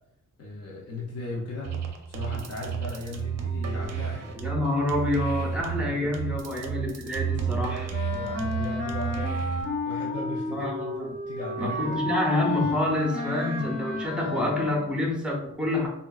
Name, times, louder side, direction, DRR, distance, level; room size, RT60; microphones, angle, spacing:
voice 1, 0.4-1.8 2.1-4.4 5.6-6.2 6.4-6.7 7.4-7.8 8.1-9.5 9.9-10.9 11.3-12.0 13.3-13.4, left 2 dB, 55° left, -3 dB, 0.6 m, -37 dB
sound 1, 1.6-9.7, right 7 dB, 60° right, 0.5 m, -31 dB
voice 2, 4.4-7.9 10.5-11.1 11.6-15.9, left 1 dB, 5° right, -2 dB, 0.5 m, -28 dB
Wind instrument woodwind instrument, 7.9-15.1, left 2 dB, 35° left, 1.1 m, -31 dB
3.6 x 2.1 x 2.3 m, 0.81 s
wide cardioid pair, 175°, 30 cm